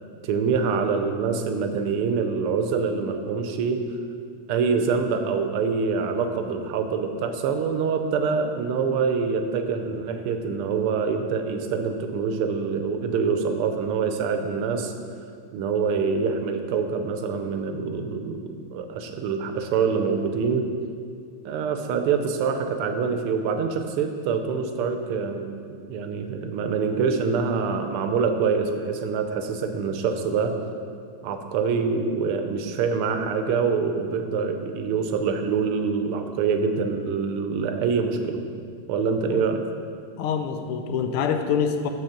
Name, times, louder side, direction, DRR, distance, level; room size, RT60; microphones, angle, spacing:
voice 1, 0.2-3.9 4.5-14.9 15.5-20.7 21.4-30.6 31.2-38.4 38.9-39.6, right 5 dB, 90° right, 6 dB, 1.6 m, -25 dB
voice 2, 40.2-41.9, left 7 dB, 85° left, 7 dB, 1.5 m, -25 dB
6.8 x 6.3 x 5.8 m, 2.2 s
omnidirectional pair, 2.4 m